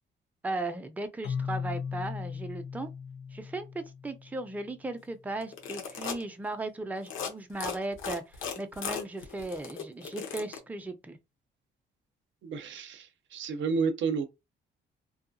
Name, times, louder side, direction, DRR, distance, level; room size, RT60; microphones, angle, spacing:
voice 1, 0.4-2.9 3.3-11.2, right 2 dB, 10° right, 0.5 m, -37 dB
Keyboard (musical), 1.2-4.9, left 6 dB, 60° left, 0.4 m, -37 dB
sound 1, 5.4-6.2 7.0-7.3 7.6-10.6, left 7 dB, 85° left, 0.8 m, -36 dB
voice 2, 12.4-13.1 13.3-14.3, right 5 dB, 70° right, 0.6 m, -30 dB
2.7 x 2.3 x 2.6 m
cardioid pair, 90°, 20 cm